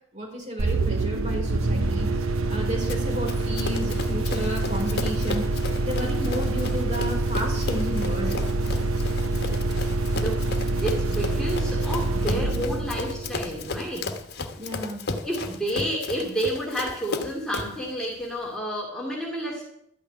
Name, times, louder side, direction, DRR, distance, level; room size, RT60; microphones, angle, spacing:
voice 1, 0.1-2.1 2.5-5.4 5.8-8.4 14.6-15.0, equal, 35° right, -1 dB, 4.9 m, -32 dB
sound 1, 0.6-14.1, right 2 dB, 80° right, 0.9 m, -26 dB
Run, 2.9-17.8, left 3 dB, 55° left, 1.3 m, -35 dB
voice 2, 10.2-10.5 10.8-14.2 15.2-19.7, right 1 dB, ahead, -3 dB, 2.6 m, -30 dB
13.0 x 6.4 x 9.6 m, 0.74 s
head